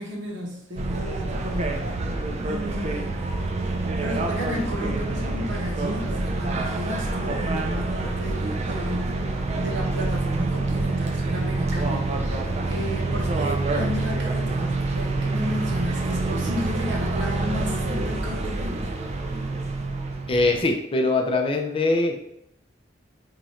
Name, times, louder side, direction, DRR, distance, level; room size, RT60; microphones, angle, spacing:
voice 1, 0.0-1.8 2.5-3.2 4.0-18.9, equal, 75° right, -1 dB, 0.9 m, -33 dB
sound 1, 0.8-20.7, right 2 dB, 35° right, 0.4 m, -27 dB
voice 2, 20.3-22.2, left 2 dB, 30° left, 3 dB, 0.4 m, -22 dB
3.0 x 2.4 x 4.2 m, 0.78 s
head